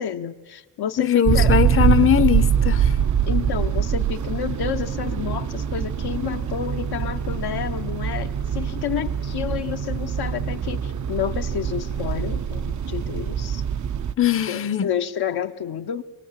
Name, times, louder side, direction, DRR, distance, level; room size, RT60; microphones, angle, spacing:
voice 1, 0.0-1.5 3.3-13.6 14.5-16.0, left 9 dB, 60° left, 0.9 m, -30 dB
voice 2, 1.0-3.0 14.2-14.9, left 10 dB, 30° left, 0.8 m, -20 dB
sound 1, 1.3-14.1, right 8 dB, 45° right, 0.7 m, -24 dB
23.5 x 17.5 x 7.4 m
cardioid pair, 75°, 43 cm